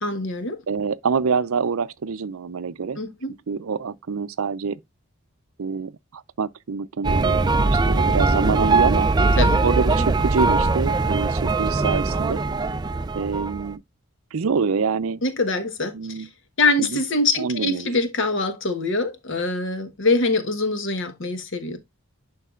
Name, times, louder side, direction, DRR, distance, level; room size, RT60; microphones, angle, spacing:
voice 1, 0.0-0.6 3.0-3.3 9.4-9.6 15.2-16.3 16.6-21.8, left 3 dB, 55° left, 1.2 m, -24 dB
voice 2, 0.7-3.0 3.5-4.8 5.6-9.1 9.6-12.4 13.2-13.8 14.3-15.2 15.9-16.3 16.8-17.0 17.4-17.9, right 5 dB, 70° right, 0.5 m, -26 dB
sound 1, 7.0-13.7, right 3 dB, 20° right, 0.3 m, -21 dB
11.0 x 4.7 x 2.4 m
head